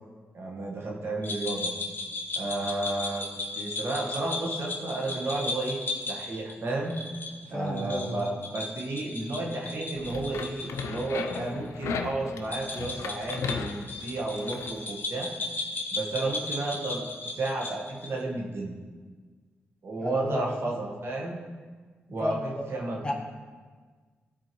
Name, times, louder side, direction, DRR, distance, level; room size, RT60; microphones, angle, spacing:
voice 1, 0.3-1.7 2.3-3.2 3.5-5.8 6.1-7.0 7.5-15.3 15.9-17.0 17.3-18.8 19.8-21.4 22.1-23.1, right 2 dB, 60° right, -1 dB, 1.3 m, -32 dB
sound 1, 1.2-11.4 11.7-11.8 12.4-18.2, left 2 dB, 45° left, 1.2 m, -36 dB
voice 2, 7.4-8.2 20.0-20.5 22.1-22.6 23.0-23.1, left 1 dB, 20° left, 0 dB, 1.2 m, -33 dB
sound 2, 9.9-14.7, left 5 dB, 90° left, 0.5 m, -36 dB
12.5 x 4.4 x 3.0 m, 1.5 s
cardioid pair, 55°, 5 cm